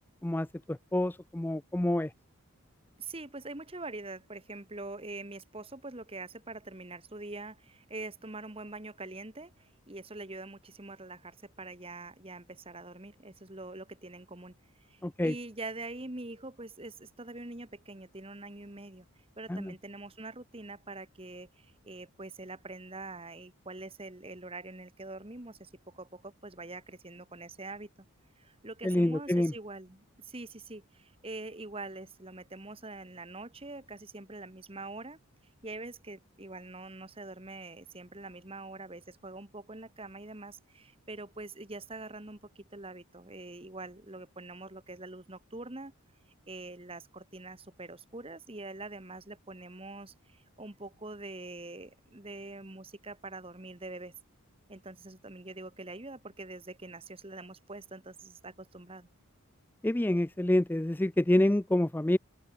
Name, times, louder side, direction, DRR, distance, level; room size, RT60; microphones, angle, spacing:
voice 1, 0.2-2.1 15.0-15.3 19.5-19.7 28.8-29.5 59.8-62.2, left 1 dB, 10° left, 0.4 m, -27 dB
voice 2, 3.0-19.1 19.4-27.9 28.4-35.2 35.6-45.9 46.5-54.1 54.7-59.1, right 2 dB, 25° right, 1.6 m, -44 dB
open air
head